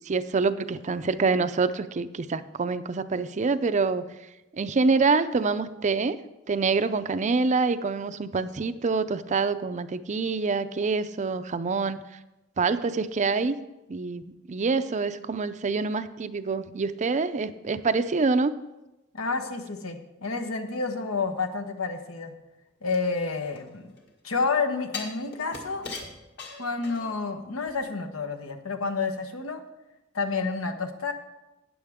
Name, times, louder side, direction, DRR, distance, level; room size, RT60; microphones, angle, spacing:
voice 1, 0.1-4.0 4.5-6.2 6.5-12.0 12.6-13.6 13.9-14.2 14.5-18.5, right 4 dB, 35° right, 12 dB, 0.5 m, -26 dB
voice 2, 19.1-22.3 22.8-23.9 24.2-25.9 26.6-29.6 30.1-31.1, left 4 dB, 85° left, 6 dB, 1.2 m, -29 dB
sound 1, 22.9-24.1 24.9-27.3 27.7-27.8, left 4 dB, 55° left, 1.9 m, -40 dB
13.0 x 9.3 x 3.6 m, 0.98 s
head